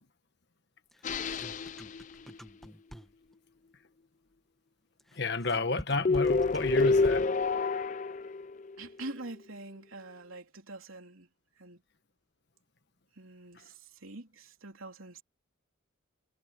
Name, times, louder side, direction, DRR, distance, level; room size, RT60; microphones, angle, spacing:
sound 1, 0.9-3.3 5.0-7.5, equal, ahead, 1.1 m, -47 dB
sound 2, 1.0-2.4 6.0-8.8, left 4 dB, 35° left, 0.4 m, -28 dB
voice 1, 5.1-7.3, left 2 dB, 55° left, 1.4 m, -30 dB
voice 2, 8.8-11.3 11.6-11.8 13.1-15.2, right 2 dB, 80° right, 3.5 m, -45 dB
head